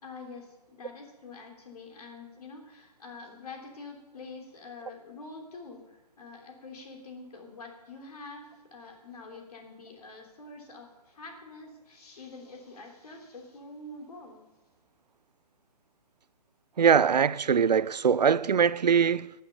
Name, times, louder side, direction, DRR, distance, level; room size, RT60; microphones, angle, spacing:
voice 1, 0.0-14.5, left 3 dB, 65° left, 3.3 m, -46 dB
voice 2, 16.8-19.3, right 7 dB, 90° right, 0.5 m, -22 dB
12.5 x 7.5 x 7.0 m
hypercardioid pair, 140°, 21 cm